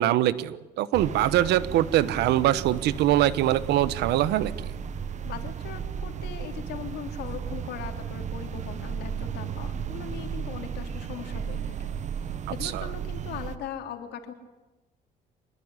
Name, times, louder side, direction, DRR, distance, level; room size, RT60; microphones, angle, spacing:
voice 1, 0.0-4.5 12.6-12.8, right 13 dB, 80° right, 16 dB, 1.3 m, -23 dB
sound 1, 0.9-13.6, right 7 dB, 45° right, 1.3 m, -34 dB
voice 2, 5.2-11.9 12.5-14.3, left 8 dB, 75° left, 5 dB, 3.6 m, -39 dB
25.5 x 20.0 x 9.9 m, 1.1 s
cardioid pair, 110°, 17 cm